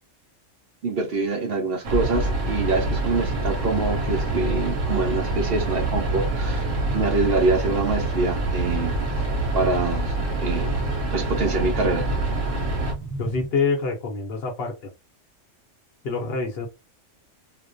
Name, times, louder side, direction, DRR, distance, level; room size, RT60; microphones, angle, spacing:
voice 1, 0.8-6.6 6.9-9.0 9.5-10.1 10.4-10.7 11.1-12.0, right 3 dB, 60° right, 0.7 m, -25 dB
sound 1, 1.8-12.9, right 2 dB, 85° right, 1.0 m, -26 dB
sound 2, 2.0-13.5, right 3 dB, 25° left, 0.5 m, -38 dB
voice 2, 13.2-14.9 16.0-16.7, left 4 dB, 60° left, 0.8 m, -26 dB
2.4 x 2.1 x 2.5 m
omnidirectional pair, 1.3 m